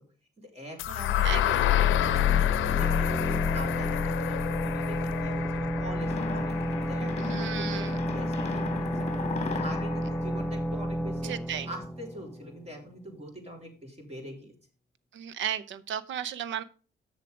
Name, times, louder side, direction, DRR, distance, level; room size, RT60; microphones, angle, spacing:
voice 1, 0.4-2.5 2.7-6.6 6.9-8.9 9.5-11.3 11.7-14.5, equal, 35° right, 2 dB, 3.3 m, -43 dB
sound 1, 0.8-8.7, left 12 dB, 80° left, 0.6 m, -28 dB
voice 2, 1.2-1.8 7.2-8.0 11.2-11.7 15.1-16.6, right 9 dB, 70° right, 16 dB, 0.7 m, -34 dB
sound 2, 1.5-13.0, right 1 dB, 5° left, 0.4 m, -32 dB
sound 3, 6.0-11.3, left 5 dB, 35° left, 1.2 m, -37 dB
7.4 x 6.8 x 5.1 m, 0.38 s
cardioid pair, 90°, 20 cm